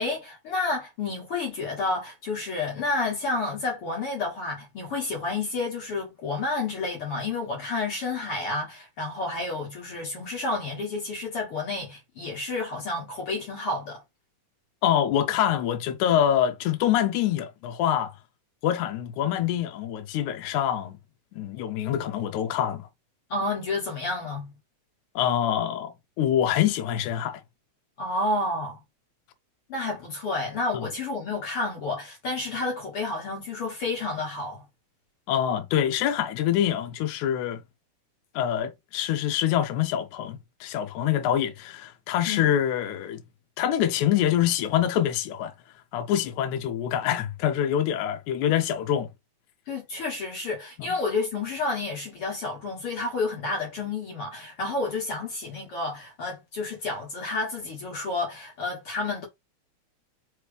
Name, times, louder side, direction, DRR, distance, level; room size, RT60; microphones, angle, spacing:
voice 1, 0.0-14.0 23.3-24.5 28.0-28.8 29.7-34.6 42.3-42.5 49.7-59.3, left 3 dB, 55° left, 2.1 m, -30 dB
voice 2, 14.8-18.1 18.6-21.0 21.3-22.9 25.2-27.4 30.7-30.9 35.3-37.6 38.4-43.2 43.6-45.5 45.9-49.1 50.8-51.0, left 10 dB, 80° left, 2.1 m, -25 dB
4.8 x 3.1 x 3.3 m
omnidirectional pair, 3.4 m